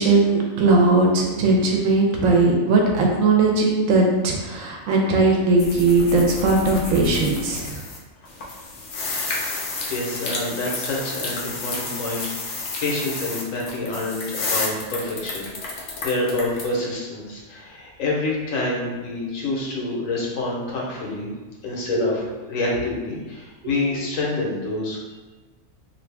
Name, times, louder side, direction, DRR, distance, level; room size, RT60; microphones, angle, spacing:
voice 1, 0.0-7.8 21.9-22.0, right 3 dB, 85° right, 0 dB, 1.0 m, -19 dB
sound 1, 5.6-8.0 8.2-16.6, left 3 dB, 55° left, 0.6 m, -31 dB
voice 2, 9.9-12.3 12.8-21.3 21.6-22.2 22.5-25.2, left 2 dB, 85° left, -3 dB, 1.2 m, -27 dB
2.8 x 2.6 x 3.3 m, 1.2 s
omnidirectional pair, 1.3 m